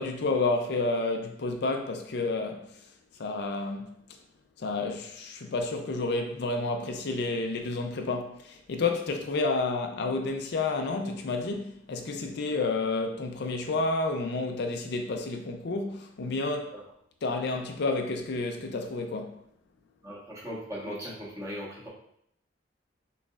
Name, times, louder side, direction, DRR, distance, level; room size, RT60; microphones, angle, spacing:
voice 1, 0.0-4.0 4.6-16.8 17.2-19.4, left 3 dB, 65° left, 0.5 m, -30 dB
voice 2, 20.0-21.9, equal, 15° right, 1.2 m, -38 dB
6.2 x 3.2 x 2.4 m
head